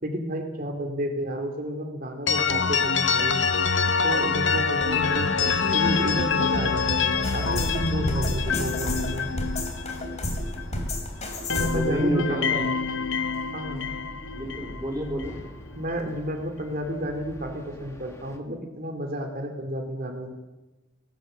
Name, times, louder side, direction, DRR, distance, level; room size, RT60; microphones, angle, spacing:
voice 1, 0.0-3.4 4.0-9.3 11.6-12.4 13.5-13.9 15.8-20.3, equal, 45° right, 4 dB, 2.7 m, -31 dB
sound 1, 2.3-11.0 11.3-15.4, left 5 dB, 60° left, 1.1 m, -26 dB
sound 2, 4.8-18.4, equal, 15° left, 1.9 m, -45 dB
sound 3, 7.2-12.0, left 1 dB, 35° left, 3.2 m, -31 dB
voice 2, 11.6-12.7 14.3-15.4, right 1 dB, 20° right, 0 dB, 3.1 m, -30 dB
19.5 x 18.5 x 7.7 m, 1.1 s
head